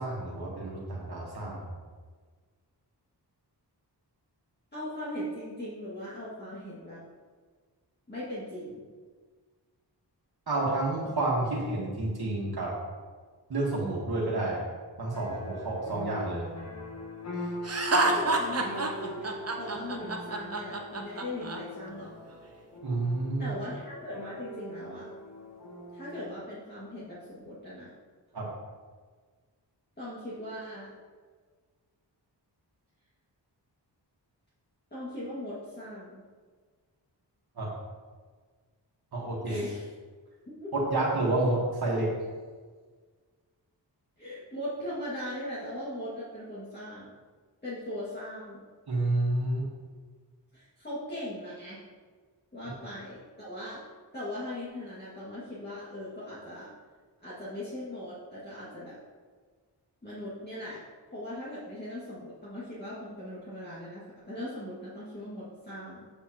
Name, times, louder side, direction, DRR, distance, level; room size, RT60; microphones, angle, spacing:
voice 1, 0.0-1.7 10.5-12.7 13.5-14.7 15.0-16.5 22.8-23.6 28.3-28.5 37.5-37.7 39.1-39.6 40.7-42.2 48.9-49.7, right 2 dB, 60° right, -4 dB, 1.5 m, -29 dB
voice 2, 4.7-7.0 8.1-8.8 17.9-22.1 23.4-25.1 25.9-27.9 30.0-30.9 34.9-36.2 39.4-39.8 40.6-40.7 44.2-47.1 47.6-48.6 50.5-51.8 52.5-53.8 54.1-56.7 57.2-59.0 60.0-60.8 61.1-66.1, left 1 dB, 25° left, -11 dB, 2.1 m, -39 dB
sound 1, 15.1-26.4, left 2 dB, 40° left, 1.2 m, -42 dB
Laughter, 17.6-21.6, right 2 dB, 35° right, 0.8 m, -28 dB
7.6 x 6.6 x 2.9 m, 1.5 s
wide cardioid pair, 90°, 42 cm